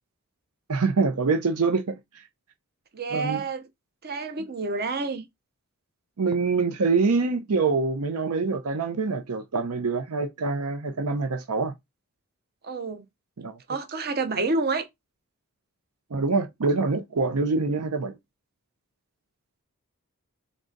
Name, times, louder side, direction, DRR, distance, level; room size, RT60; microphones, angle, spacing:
voice 1, 0.7-2.2 3.1-3.4 6.2-11.7 13.4-13.6 16.1-18.2, right 4 dB, 75° right, 0.6 m, -25 dB
voice 2, 2.9-3.7 4.0-5.2 12.6-13.0 13.7-14.9, right 3 dB, 45° right, 0.8 m, -28 dB
3.8 x 3.5 x 3.8 m
head